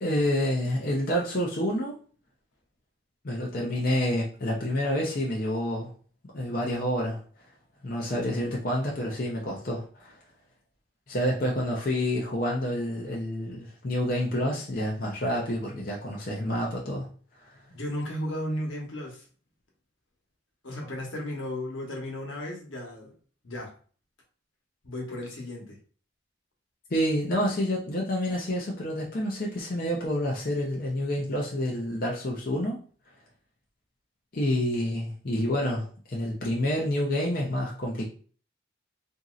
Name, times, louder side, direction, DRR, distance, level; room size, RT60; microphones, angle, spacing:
voice 1, 0.0-2.0 3.2-5.9 6.3-7.2 7.8-10.1 11.1-17.1 26.9-32.8 34.3-38.1, equal, 45° left, -3 dB, 0.5 m, -28 dB
voice 2, 17.7-19.3 20.6-23.2 23.4-23.7 24.8-25.8, left 1 dB, 85° left, -1 dB, 1.0 m, -34 dB
2.9 x 2.6 x 2.4 m, 0.41 s
head